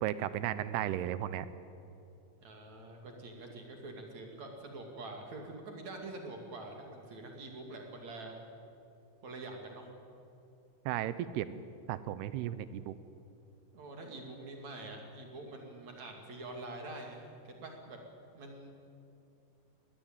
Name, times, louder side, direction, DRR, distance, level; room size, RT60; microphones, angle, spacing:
voice 1, 0.0-1.5 10.9-11.6 11.9-12.9, right 12 dB, 80° right, 14 dB, 2.4 m, -35 dB
voice 2, 2.4-8.3 9.2-9.9 13.7-18.0 18.3-18.7, right 2 dB, 45° right, 2 dB, 3.2 m, -45 dB
21.0 x 19.0 x 8.9 m, 2.7 s
omnidirectional pair, 5.2 m